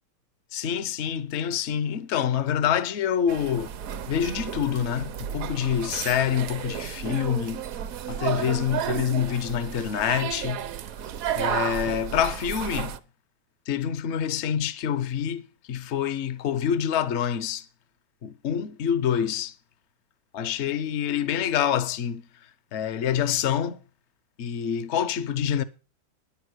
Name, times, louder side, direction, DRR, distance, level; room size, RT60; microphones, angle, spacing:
voice 1, 0.5-3.7 4.1-7.7 8.1-10.6 11.3-13.0 13.7-17.7 18.2-19.6 20.3-23.8 24.4-25.6, left 9 dB, 65° left, 0.6 m, -26 dB
sound 1, 3.3-13.0, right 9 dB, 65° right, 0.9 m, -32 dB
10.5 x 8.4 x 6.2 m
omnidirectional pair, 2.1 m